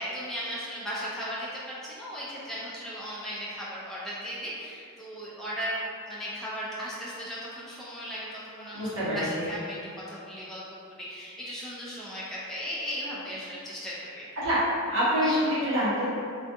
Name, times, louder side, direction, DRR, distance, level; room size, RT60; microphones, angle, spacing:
voice 1, 0.0-5.8 6.1-14.3 15.2-15.5, equal, ahead, -8 dB, 0.3 m, -37 dB
voice 2, 8.7-9.5 14.4-14.6 14.9-16.1, equal, 60° right, -10 dB, 1.0 m, -26 dB
2.4 x 2.4 x 2.5 m, 2.5 s
head